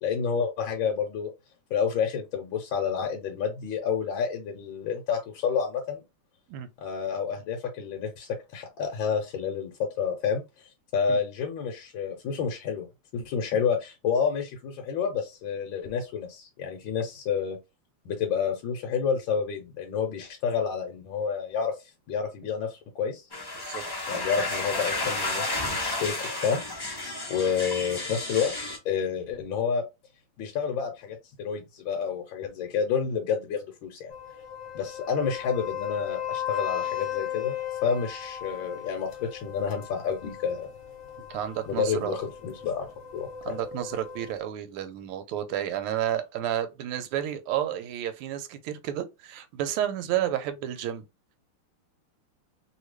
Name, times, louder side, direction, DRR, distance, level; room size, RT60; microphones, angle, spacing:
voice 1, 0.0-1.3 1.7-6.0 6.8-9.7 10.0-12.9 13.1-17.6 18.0-21.7 22.1-23.3 24.1-26.6 27.3-28.5 28.8-29.8 30.4-34.1 34.7-37.5 37.8-40.7 41.7-43.6, left 6 dB, 70° left, 1.4 m, -29 dB
sound 1, 23.3-28.8, left 2 dB, 25° left, 0.4 m, -32 dB
voice 2, 23.6-24.1 41.3-42.2 43.4-51.0, right 11 dB, 85° right, 1.5 m, -31 dB
sound 2, 34.1-44.4, left 9 dB, 50° left, 1.0 m, -37 dB
3.4 x 2.4 x 3.2 m
omnidirectional pair, 2.4 m